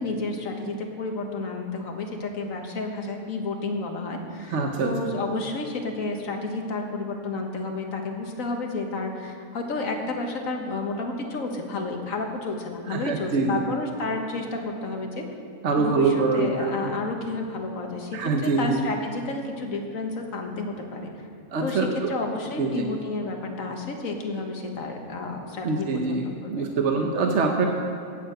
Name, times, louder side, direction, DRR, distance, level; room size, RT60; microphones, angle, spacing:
voice 1, 0.0-15.3 15.8-21.3 21.6-26.6 27.0-27.1, left 3 dB, 60° left, 3 dB, 1.6 m, -31 dB
voice 2, 4.5-4.9 12.9-13.6 15.6-16.9 18.1-18.8 21.5-22.1 22.6-22.8 25.6-27.7, right 4 dB, 55° right, 2 dB, 1.1 m, -24 dB
8.7 x 8.6 x 7.9 m, 2.6 s
omnidirectional pair, 1.6 m